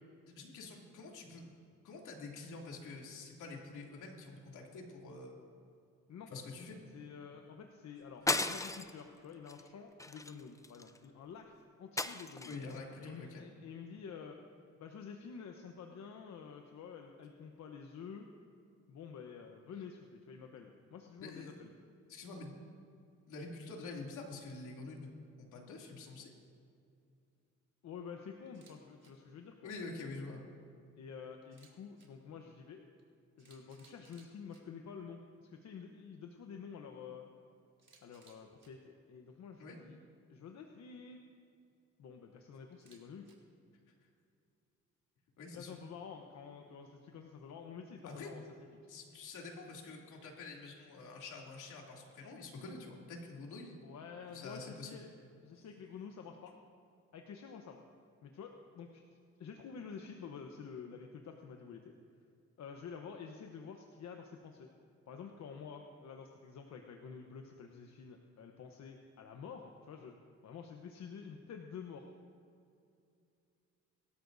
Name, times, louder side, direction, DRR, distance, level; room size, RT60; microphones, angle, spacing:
voice 1, 0.3-1.5 1.8-5.4 6.3-7.0 12.5-13.4 21.2-21.5 22.1-22.5 23.3-25.1 25.4-26.3 29.6-30.4 39.6-39.8 45.4-45.8 48.0-48.3 48.8-53.8 54.3-55.0, left 3 dB, 80° left, -1 dB, 2.9 m, -47 dB
voice 2, 6.9-12.6 13.0-14.4 14.8-18.3 18.9-21.7 27.8-29.7 31.0-32.8 33.4-37.2 38.0-40.0 40.3-41.2 42.0-43.4 45.5-48.4 53.8-55.1 55.4-56.5 57.1-57.8 58.2-59.0 59.4-61.9 62.6-64.7 65.1-70.1 70.4-72.1, left 6 dB, 65° left, 3 dB, 1.0 m, -49 dB
sound 1, 8.3-9.0 9.5-9.7 10.0-11.0 12.0-12.7, left 2 dB, 10° left, 0.6 m, -35 dB
Camera, 28.5-28.7 29.0-29.1 31.4-32.1 33.0-33.1 33.4-34.6 37.8-38.7 42.7-43.3, right 5 dB, 40° right, 3.2 m, -64 dB
22.5 x 13.0 x 2.7 m, 2.5 s
cardioid pair, 90°, 30 cm